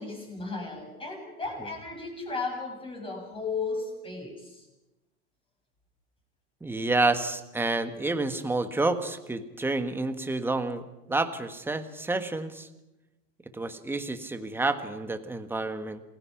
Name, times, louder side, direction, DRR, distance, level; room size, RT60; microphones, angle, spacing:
voice 1, 0.0-4.7, left 4 dB, 10° left, 1 dB, 7.3 m, -35 dB
voice 2, 6.6-12.7 13.5-16.0, right 2 dB, 5° right, 9 dB, 1.4 m, -29 dB
28.0 x 21.0 x 5.9 m, 0.98 s
supercardioid pair, 140°, 46 cm